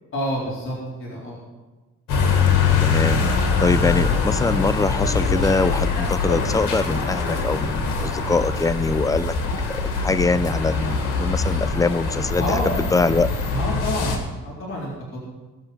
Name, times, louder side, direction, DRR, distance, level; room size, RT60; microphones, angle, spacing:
voice 1, 0.1-1.4 12.4-12.8 13.5-15.2, left 1 dB, 45° left, -5 dB, 4.1 m, -28 dB
sound 1, 2.1-14.2, left 5 dB, 90° left, 2.0 m, -23 dB
voice 2, 2.8-3.3 3.6-9.3 9.7-13.3, left 3 dB, 10° left, 15 dB, 0.5 m, -23 dB
19.5 x 6.5 x 6.0 m, 1.2 s
cardioid pair, 90°, 30 cm